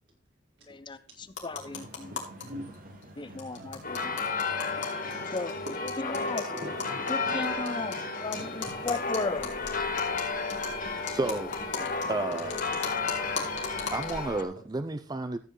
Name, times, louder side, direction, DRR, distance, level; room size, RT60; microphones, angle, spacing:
voice 1, 0.7-1.0 1.4-2.1 3.2-4.1 5.3-5.5 6.0-6.4 7.1-7.9 8.2-9.5, left 3 dB, 25° left, 0.6 m, -35 dB
sound 1, 1.3-2.4 2.7-2.8 3.0-3.1 3.4-7.9 8.3-14.3, left 5 dB, 85° left, 2.8 m, -39 dB
sound 2, 1.5-14.0, right 1 dB, 50° right, 2.0 m, -49 dB
voice 2, 1.5-1.9 2.4-2.8 3.2-5.3 6.3-6.8 8.0-9.0, left 1 dB, 75° right, 4.5 m, -47 dB
sound 3, 3.8-14.4, left 4 dB, 50° left, 1.5 m, -33 dB
voice 3, 7.1-7.5 11.1-11.6 12.1-12.6 13.9-15.4, right 2 dB, 20° right, 0.4 m, -32 dB
14.0 x 7.8 x 3.1 m
head